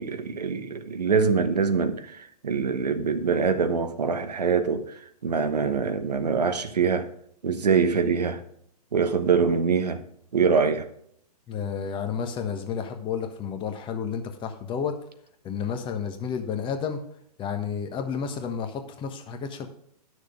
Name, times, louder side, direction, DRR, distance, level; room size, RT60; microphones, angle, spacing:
voice 1, 0.0-4.9 5.2-7.1 7.4-8.4 8.9-10.0 10.3-10.9, right 5 dB, 80° right, 1.1 m, -24 dB
voice 2, 11.5-15.0 15.4-17.0 17.4-19.7, left 7 dB, 25° left, 1.2 m, -31 dB
10.5 x 6.5 x 5.1 m
hypercardioid pair, 120°, 20 cm